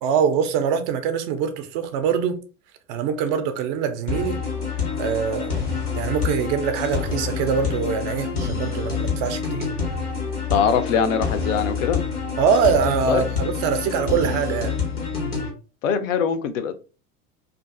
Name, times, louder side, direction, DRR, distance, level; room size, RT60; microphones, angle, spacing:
voice 1, 0.0-2.4 2.9-4.4 5.0-5.6 6.0-9.7 12.4-14.7, right 6 dB, 30° right, 0.4 m, -23 dB
sound 1, 4.1-15.5, left 5 dB, 90° left, 0.8 m, -27 dB
voice 2, 10.5-12.0 13.1-13.2 15.8-16.7, left 6 dB, 60° left, 0.5 m, -22 dB
2.5 x 2.5 x 2.3 m
figure-of-eight pair, 75°, 44 cm